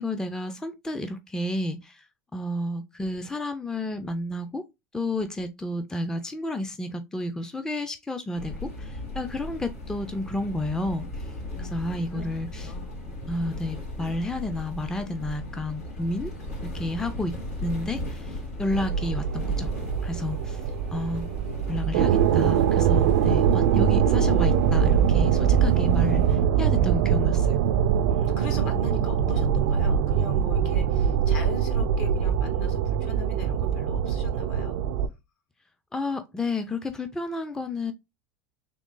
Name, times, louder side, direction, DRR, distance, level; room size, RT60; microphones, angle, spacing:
voice 1, 0.0-2.1 2.3-4.6 4.9-11.3 11.6-12.7 13.3-16.3 16.6-17.3 17.6-19.7 20.0-20.6 20.9-21.3 21.7-27.6 35.9-37.9, left 2 dB, 5° left, 0.5 m, -31 dB
sound 1, 8.4-26.4, left 1 dB, 85° left, 2.3 m, -37 dB
voice 2, 11.4-11.7 12.1-12.3 12.5-13.3 21.4-21.7 28.1-34.8, left 2 dB, 65° left, 2.1 m, -40 dB
sound 2, 18.7-35.1, right 8 dB, 70° right, 0.4 m, -23 dB
3.7 x 3.1 x 3.7 m
hypercardioid pair, 95°, 8 cm